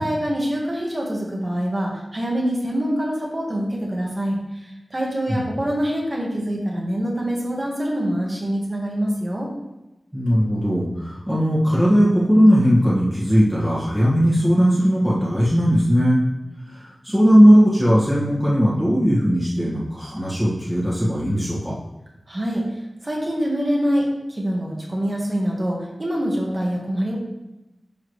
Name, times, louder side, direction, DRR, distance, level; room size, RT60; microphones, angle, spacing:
voice 1, 0.0-9.5 22.3-27.2, equal, 35° right, -3 dB, 1.7 m, -25 dB
voice 2, 10.1-16.2 16.7-21.8, equal, 5° right, -9 dB, 1.8 m, -18 dB
11.0 x 3.7 x 3.2 m, 0.96 s
wide cardioid pair, 80°, 0 cm